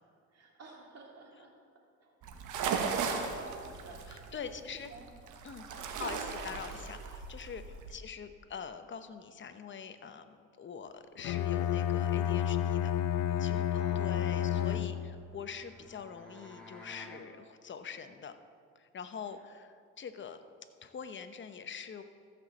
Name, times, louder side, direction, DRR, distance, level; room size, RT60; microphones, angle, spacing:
voice 1, 0.3-1.5 2.0-5.1 5.7-6.0 7.8-7.9 13.7-15.0, right 3 dB, 55° right, -1 dB, 2.9 m, -52 dB
sound 1, 2.2-8.0, right 5 dB, 85° right, 1.3 m, -37 dB
voice 2, 4.1-4.9 5.4-5.7 6.0-12.9 13.4-18.4 18.8-20.4 20.8-22.0, left 6 dB, 40° left, 9 dB, 0.9 m, -44 dB
Bowed string instrument, 11.2-15.3, left 10 dB, 90° left, 0.5 m, -30 dB
sound 2, 14.7-17.3, left 2 dB, 5° left, 2.2 m, -53 dB
14.0 x 6.1 x 7.4 m, 2.1 s
cardioid pair, 90°, 30 cm